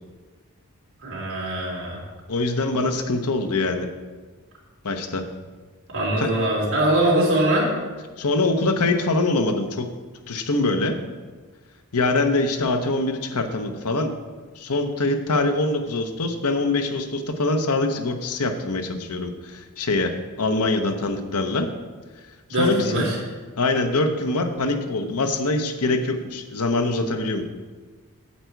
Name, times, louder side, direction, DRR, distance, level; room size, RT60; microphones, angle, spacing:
voice 1, 1.0-2.0 5.9-7.7 22.5-23.2, right 1 dB, 60° right, -3 dB, 3.0 m, -22 dB
voice 2, 2.3-3.9 4.8-5.2 6.2-6.3 8.2-9.9 10.3-11.0 11.9-14.1 14.6-20.1 20.4-21.7 22.6-23.0 23.6-27.4, left 2 dB, 80° left, 6 dB, 0.9 m, -23 dB
8.6 x 8.1 x 4.6 m, 1.3 s
head